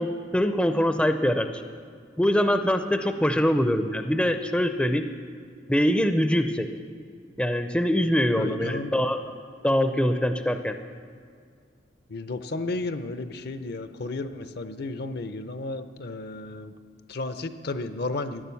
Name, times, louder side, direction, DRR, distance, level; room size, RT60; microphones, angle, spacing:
voice 1, 0.0-1.5 2.2-5.1 5.7-6.7 7.4-9.2 9.6-10.7, equal, 5° left, 7 dB, 0.5 m, -23 dB
voice 2, 8.4-8.9 12.1-16.7 17.1-18.4, left 2 dB, 55° left, 10 dB, 0.6 m, -33 dB
13.5 x 10.0 x 7.0 m, 2.1 s
head